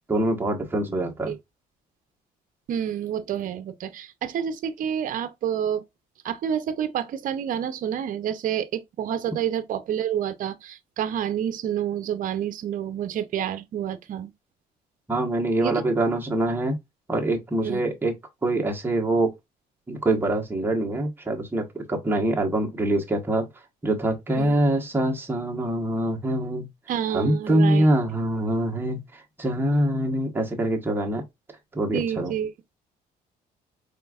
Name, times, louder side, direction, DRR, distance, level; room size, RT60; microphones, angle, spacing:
voice 1, 0.1-1.3 15.1-16.8 17.1-18.1 18.4-19.3 19.9-23.5 23.8-26.7 27.1-29.0 29.4-31.2 31.7-32.3, right 1 dB, 10° right, 1.3 m, -24 dB
voice 2, 2.7-5.8 6.2-14.3 15.6-15.8 17.6-17.8 24.3-24.5 26.9-27.9 31.9-32.5, right 9 dB, 50° right, 0.7 m, -28 dB
4.4 x 3.6 x 2.4 m
cardioid pair, 110°, 17 cm